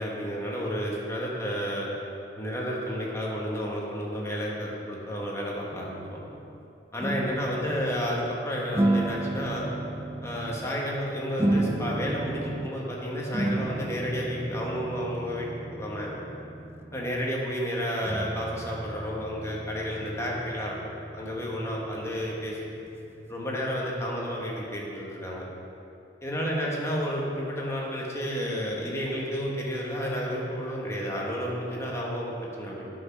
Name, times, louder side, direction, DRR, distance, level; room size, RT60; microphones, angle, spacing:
voice 1, 0.0-1.9 2.4-6.2 6.9-9.7 10.2-16.1 16.9-20.7 21.1-22.6 23.3-25.4 26.2-32.9, equal, 15° left, -3 dB, 1.4 m, -31 dB
sound 1, 5.7-6.6 7.0-8.3 8.7-10.7 11.4-12.8 13.3-17.3 18.0-24.5, right 1 dB, 15° right, 0.4 m, -33 dB
9.1 x 6.3 x 6.0 m, 2.8 s
head